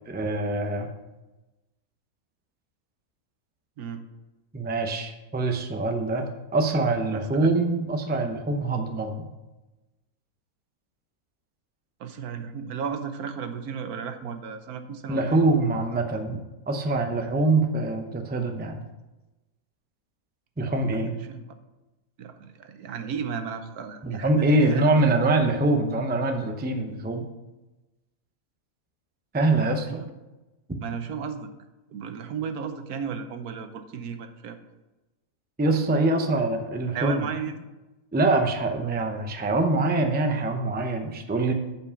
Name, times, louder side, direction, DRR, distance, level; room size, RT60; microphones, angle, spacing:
voice 1, 0.1-0.9 4.5-6.2 6.5-9.3 15.1-18.8 20.6-21.1 24.0-27.2 29.3-30.0 30.7-30.8 35.6-37.2 38.1-41.5, right 2 dB, 15° right, 4 dB, 0.4 m, -24 dB
voice 2, 7.1-7.5 12.0-15.2 20.9-21.4 22.2-25.0 29.9-30.1 30.8-31.5 31.9-34.6 36.9-37.6, right 6 dB, 85° right, 8 dB, 1.3 m, -34 dB
7.2 x 5.4 x 6.9 m, 1.1 s
omnidirectional pair, 1.5 m